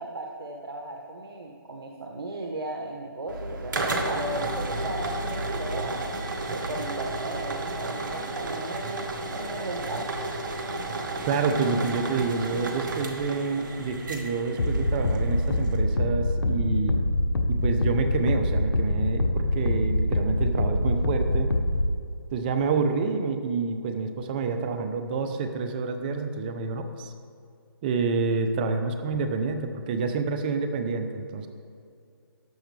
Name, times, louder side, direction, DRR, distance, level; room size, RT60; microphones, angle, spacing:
voice 1, 0.0-3.7 4.1-9.0 9.3-10.1, right 2 dB, 75° right, 1 dB, 1.2 m, -36 dB
sound 1, 3.3-15.8, right 2 dB, 55° right, 1.5 m, -32 dB
voice 2, 11.2-17.0 17.5-21.5 22.3-27.1 27.8-31.5, right 4 dB, 25° right, 7 dB, 0.8 m, -28 dB
sound 2, 14.6-22.0, left 1 dB, 75° left, 1.2 m, -25 dB
14.5 x 10.0 x 3.4 m, 2.4 s
hypercardioid pair, 155°, 12 cm